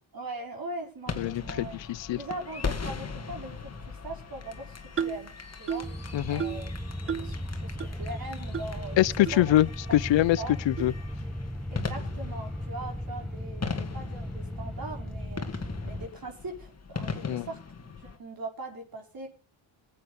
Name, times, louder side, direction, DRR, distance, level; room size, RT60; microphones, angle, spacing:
voice 1, 0.1-1.7 2.2-3.5 3.9-4.8 5.0-5.3 5.6-5.9 6.3-6.7 7.0-9.0 9.3-9.5 9.9-10.5 11.7-17.6 18.0-19.3, right 2 dB, 45° right, 5.4 m, -40 dB
sound 1, 1.1-18.2, left 5 dB, 30° left, 2.1 m, -40 dB
voice 2, 1.2-2.2 6.1-6.4 9.0-10.9 17.2-17.5, left 14 dB, 65° left, 0.7 m, -24 dB
sound 2, 5.0-5.3 5.7-6.0 6.4-6.7 7.1-7.4 7.8-7.9 8.5-8.7 9.3-9.4 10.0-10.1 10.8-10.9, right 7 dB, 30° right, 0.6 m, -32 dB
sound 3, 5.8-16.1, left 1 dB, ahead, 1.2 m, -36 dB
18.5 x 8.7 x 5.4 m
cardioid pair, 85°, 48 cm